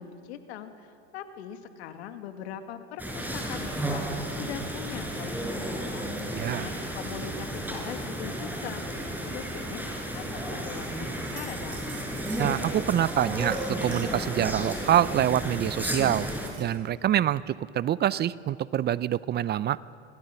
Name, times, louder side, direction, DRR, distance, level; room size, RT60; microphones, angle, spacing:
voice 1, 0.0-12.0, left 9 dB, 75° left, 8 dB, 2.1 m, -42 dB
sound 1, 3.0-16.5, right 1 dB, 5° right, 5.1 m, -33 dB
voice 2, 6.3-6.7 12.4-16.3 16.6-19.8, right 11 dB, 30° right, 19 dB, 0.5 m, -26 dB
sound 2, 11.1-14.3 15.4-16.9, right 6 dB, 50° right, 5.9 m, -48 dB
26.5 x 18.0 x 7.0 m, 2.5 s
hypercardioid pair, 85°, 33 cm